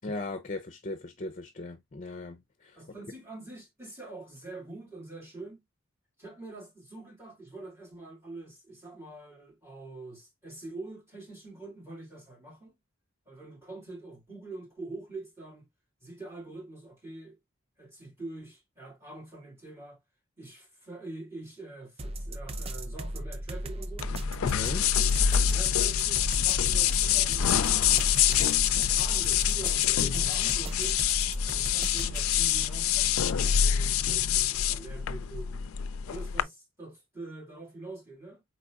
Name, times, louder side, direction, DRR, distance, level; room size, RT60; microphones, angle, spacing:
voice 1, 0.0-2.8 24.4-24.9, left 2 dB, 35° left, 0.6 m, -38 dB
voice 2, 2.7-5.6 6.2-12.8 13.3-15.7 16.0-17.4 17.8-20.0 20.4-24.1 25.4-31.0 31.4-35.7 36.1-38.4, right 2 dB, 10° right, 2.1 m, -45 dB
sound 1, 22.0-32.7, right 1 dB, 30° right, 0.4 m, -36 dB
sound 2, 24.0-36.4, left 9 dB, 90° left, 0.4 m, -26 dB
4.5 x 4.0 x 2.3 m
head